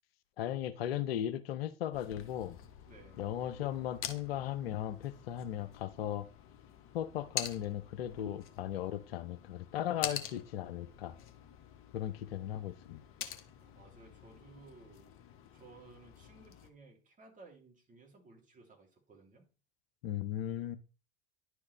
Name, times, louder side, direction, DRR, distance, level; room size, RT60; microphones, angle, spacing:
voice 1, 0.4-2.6 3.2-6.3 6.9-11.2 11.9-13.0 20.0-20.8, left 11 dB, 70° left, 0.7 m, -37 dB
sound 1, 1.9-16.7, left 9 dB, 45° left, 1.2 m, -47 dB
voice 2, 2.9-3.3 13.6-15.2 15.5-19.5, right 3 dB, 25° right, 2.8 m, -58 dB
10.5 x 4.9 x 3.2 m
hypercardioid pair, 80°, 31 cm